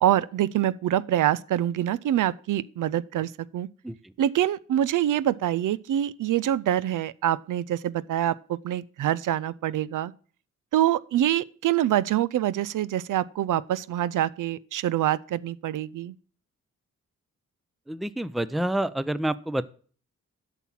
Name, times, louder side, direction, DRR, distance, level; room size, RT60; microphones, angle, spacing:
voice 1, 0.0-3.7 4.2-10.1 10.7-16.2, right 12 dB, 75° right, 0.5 m, -25 dB
voice 2, 17.9-19.6, right 1 dB, ahead, 0.5 m, -28 dB
8.1 x 5.9 x 7.2 m
cardioid pair, 60°, 32 cm